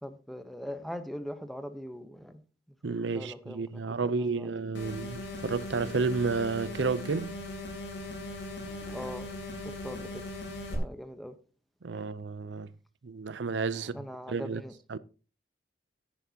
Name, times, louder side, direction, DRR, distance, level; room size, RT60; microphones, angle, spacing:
voice 1, 0.0-2.4 3.1-4.5 8.5-9.3 9.6-10.2 10.6-11.4 11.9-12.1 13.7-14.8, equal, ahead, 0.9 m, -42 dB
voice 2, 2.8-7.4 11.8-12.7 13.0-14.0 14.3-14.6 14.9-15.0, right 4 dB, 85° right, 0.6 m, -31 dB
sound 1, 4.7-10.7, left 2 dB, 75° left, 3.4 m, -39 dB
13.5 x 10.5 x 2.8 m
head